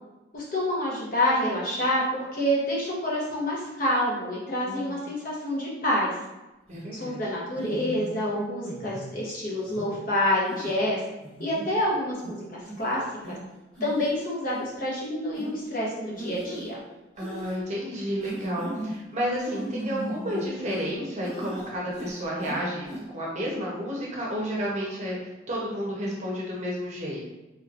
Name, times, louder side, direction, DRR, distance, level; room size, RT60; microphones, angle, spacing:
voice 1, 0.3-6.2 6.9-11.0 11.4-13.4 13.8-16.8, left 1 dB, 45° left, -6 dB, 0.9 m, -27 dB
sound 1, 6.7-6.9 7.6-8.1 8.6-9.1 9.7-9.9 10.5-10.7 11.2-11.7 12.2-12.3 12.7-12.9 13.2-13.3 13.7-14.1 14.5-14.6 15.3-15.5 16.2-16.7 17.2-17.6 18.2-18.9 19.4-20.9 21.2-21.7 21.9-22.6 22.9-23.0, right 1 dB, 5° left, 0.9 m, -37 dB
voice 2, 6.7-7.2 17.2-27.2, equal, 35° right, -4 dB, 0.8 m, -31 dB
3.3 x 3.0 x 2.4 m, 1.0 s
head